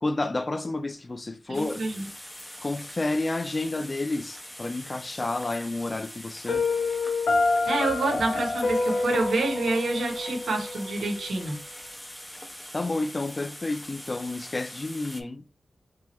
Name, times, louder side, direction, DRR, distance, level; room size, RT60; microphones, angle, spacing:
voice 1, 0.0-1.8 2.6-6.6 12.7-15.4, left 2 dB, 35° left, 0.4 m, -30 dB
sound 1, 1.5-15.2, equal, 5° left, 0.8 m, -43 dB
voice 2, 1.5-2.1 7.7-11.6, right 2 dB, 85° right, 1.1 m, -27 dB
Piano, 6.5-11.4, left 3 dB, 80° left, 0.8 m, -27 dB
3.4 x 3.0 x 3.1 m
cardioid pair, 75°, 0 cm